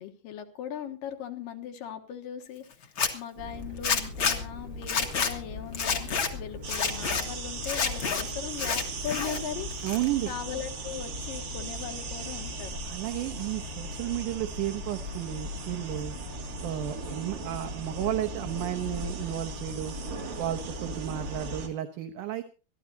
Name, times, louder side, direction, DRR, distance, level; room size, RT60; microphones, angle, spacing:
voice 1, 0.0-9.7 10.3-12.9, left 8 dB, 70° left, 5 dB, 2.8 m, -39 dB
Zipper (clothing), 2.8-3.1 3.8-4.4 4.8-5.3 5.7-6.3 6.7-7.2 7.6-8.2 8.5-9.4 9.7-10.3, left 6 dB, 45° left, 1.8 m, -28 dB
sound 1, 3.4-21.6, left 3 dB, 30° right, 5.0 m, -40 dB
sound 2, 6.6-21.7, right 6 dB, 50° right, 3.6 m, -40 dB
voice 2, 9.8-10.3 12.9-16.1 16.6-20.0 20.4-22.4, right 13 dB, 70° right, 7 dB, 2.2 m, -32 dB
23.5 x 14.0 x 2.8 m, 0.33 s
omnidirectional pair, 4.4 m